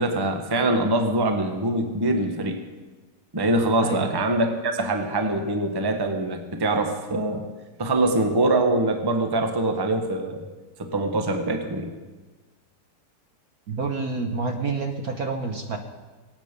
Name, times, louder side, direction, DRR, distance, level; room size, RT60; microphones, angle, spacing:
voice 1, 0.0-2.6 3.3-7.4 7.8-10.4 10.8-11.9, right 2 dB, 15° right, 5 dB, 0.9 m, -24 dB
voice 2, 3.8-4.1 13.7-15.8, right 4 dB, 55° right, 4 dB, 1.2 m, -28 dB
23.5 x 8.9 x 5.3 m, 1.3 s
omnidirectional pair, 2.4 m